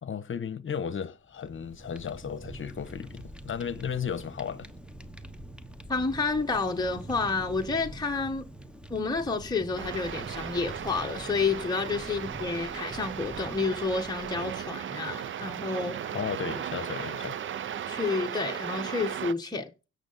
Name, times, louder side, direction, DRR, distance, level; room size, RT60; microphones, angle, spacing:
voice 1, 0.0-4.7 12.0-12.2 16.1-17.3, left 7 dB, 40° left, 1.2 m, -34 dB
Fire, 1.3-14.8, right 1 dB, 5° right, 1.2 m, -45 dB
voice 2, 5.9-8.5 8.9-16.1 17.9-19.9, left 4 dB, 15° left, 1.4 m, -30 dB
sound 1, 9.8-19.3, right 9 dB, 40° right, 0.5 m, -36 dB
16.5 x 6.7 x 4.1 m
cardioid pair, 90°, 30 cm